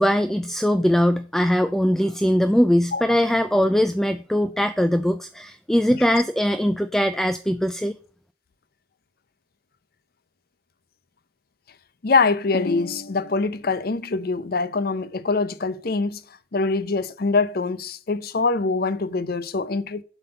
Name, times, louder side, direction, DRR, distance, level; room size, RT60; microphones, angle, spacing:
voice 1, 0.0-8.0, equal, ahead, 0.3 m, -21 dB
voice 2, 12.0-16.2 16.5-20.0, left 4 dB, 55° left, 0.6 m, -24 dB
7.8 x 4.0 x 6.6 m
head